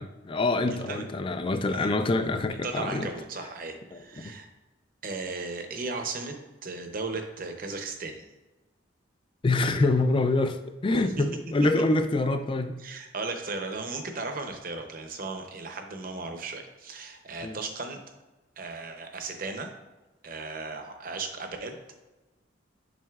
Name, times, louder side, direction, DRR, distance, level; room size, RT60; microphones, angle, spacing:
voice 1, 0.0-3.1 3.9-4.3 9.4-12.8 17.4-17.6, left 2 dB, 25° left, 9 dB, 0.3 m, -26 dB
voice 2, 2.6-4.5 5.0-8.2 10.9-11.2 12.8-18.0 18.6-19.7 20.2-21.8, right 3 dB, 45° right, 5 dB, 0.7 m, -36 dB
7.5 x 5.2 x 2.4 m, 1.1 s
head